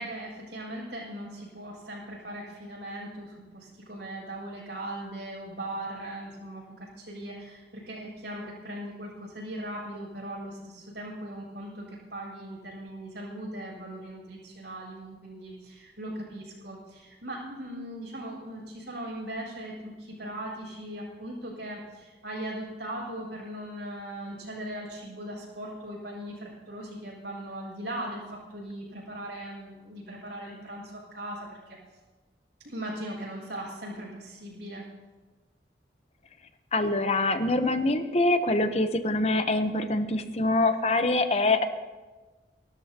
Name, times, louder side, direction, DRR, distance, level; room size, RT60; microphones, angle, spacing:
voice 1, 0.0-31.8 32.6-34.8, right 1 dB, 85° right, -10 dB, 6.0 m, -39 dB
voice 2, 36.7-41.6, left 2 dB, 35° left, 8 dB, 0.8 m, -24 dB
30.0 x 12.5 x 2.9 m, 1.3 s
head